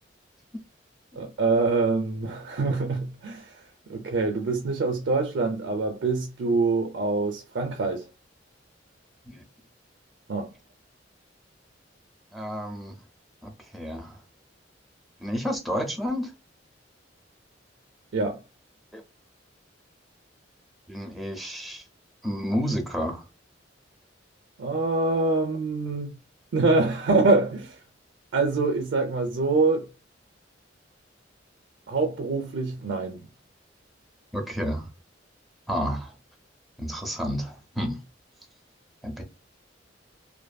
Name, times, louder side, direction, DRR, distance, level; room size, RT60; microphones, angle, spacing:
voice 1, 1.2-3.5 3.9-8.0 10.3-10.5 18.1-18.4 24.6-26.2 26.5-27.8 28.3-29.9 31.9-33.3, right 3 dB, 65° right, 0.4 m, -25 dB
voice 2, 12.3-12.9 13.4-14.2 15.2-16.3 18.9-19.0 20.9-21.8 22.2-23.2 34.3-34.9 35.7-36.1 36.8-38.0 39.0-39.2, equal, ahead, 0.5 m, -30 dB
2.5 x 2.5 x 2.2 m
head